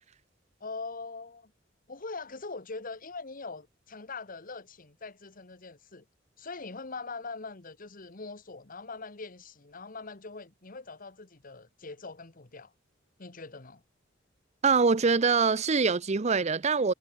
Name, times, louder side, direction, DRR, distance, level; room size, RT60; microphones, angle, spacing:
voice 1, 0.6-1.5 1.9-6.0 6.4-12.7 13.2-13.8, left 3 dB, 45° left, 1.5 m, -42 dB
voice 2, 14.6-16.9, right 4 dB, 35° right, 0.6 m, -24 dB
head